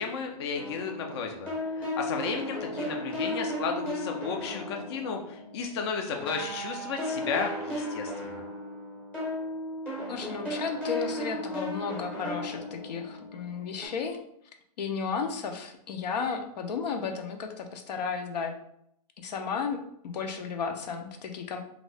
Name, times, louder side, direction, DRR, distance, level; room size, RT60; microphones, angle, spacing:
voice 1, 0.0-8.4, left 5 dB, 40° left, 3 dB, 0.4 m, -33 dB
sound 1, 0.5-5.8 6.1-13.9, left 1 dB, 5° left, 0.7 m, -35 dB
voice 2, 10.1-14.2 14.8-18.5 19.2-21.6, left 5 dB, 85° left, 5 dB, 0.6 m, -33 dB
2.7 x 2.6 x 3.2 m, 0.73 s
hypercardioid pair, 170°, 20 cm